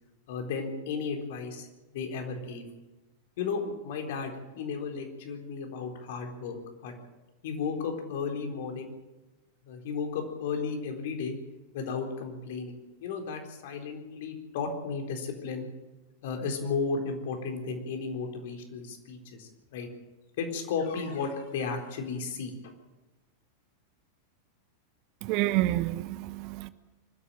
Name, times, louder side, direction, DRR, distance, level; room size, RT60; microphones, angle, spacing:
voice 1, 0.3-2.7 3.4-6.9 7.4-8.9 9.6-11.4 11.7-15.7 16.2-19.9 20.4-22.5, left 5 dB, 55° left, 3 dB, 4.0 m, -34 dB
voice 2, 25.2-26.7, right 16 dB, 45° right, 15 dB, 0.9 m, -28 dB
24.5 x 13.5 x 9.1 m, 1.1 s
figure-of-eight pair, 90°, 0 cm